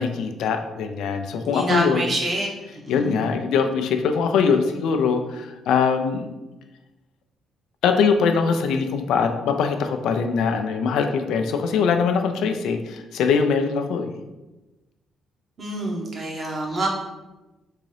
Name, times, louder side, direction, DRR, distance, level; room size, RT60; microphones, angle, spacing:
voice 1, 0.0-2.1 2.9-6.2 7.8-14.1, left 5 dB, 85° left, 6 dB, 0.3 m, -22 dB
voice 2, 1.4-2.5 2.8-3.3 15.6-16.9, right 1 dB, 45° right, -2 dB, 1.0 m, -26 dB
3.7 x 2.6 x 3.2 m, 1.1 s
cardioid pair, 100°, 0 cm